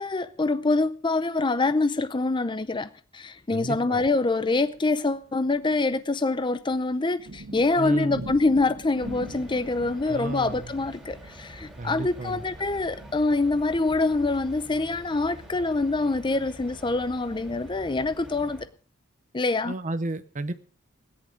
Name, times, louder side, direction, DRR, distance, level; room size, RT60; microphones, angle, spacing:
voice 1, 0.0-18.6 19.3-19.7, left 3 dB, 25° left, 0.6 m, -25 dB
voice 2, 3.5-4.0 7.8-8.3 10.1-10.7 11.8-12.4 19.7-20.5, right 2 dB, 40° right, 0.8 m, -32 dB
sound 1, 3.8-18.5, right 1 dB, 90° right, 1.7 m, -46 dB
sound 2, 9.0-18.7, right 1 dB, 5° right, 3.8 m, -46 dB
17.0 x 10.5 x 5.1 m
head